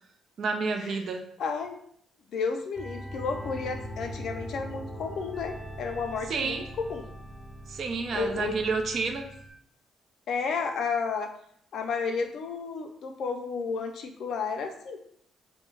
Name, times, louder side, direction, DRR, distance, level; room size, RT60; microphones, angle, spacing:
voice 1, 0.4-1.2 6.3-6.6 7.7-9.3, right 4 dB, 60° right, 4 dB, 0.4 m, -29 dB
voice 2, 1.4-1.8 2.3-7.1 8.1-8.6 10.3-11.3 11.7-15.0, left 5 dB, 70° left, 5 dB, 0.4 m, -32 dB
sound 1, 2.7-9.5, equal, 15° left, 0.6 m, -41 dB
2.2 x 2.0 x 3.1 m, 0.66 s
cardioid pair, 90°, 0 cm